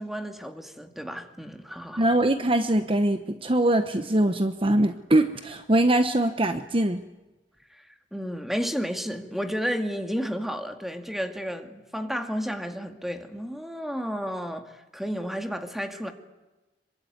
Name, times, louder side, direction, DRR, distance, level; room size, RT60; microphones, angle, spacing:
voice 1, 0.0-2.1 7.8-7.9 8.1-16.1, equal, ahead, 6 dB, 2.2 m, -32 dB
voice 2, 2.0-7.0, right 1 dB, 30° right, 9 dB, 1.0 m, -22 dB
26.5 x 23.5 x 9.5 m, 1.1 s
head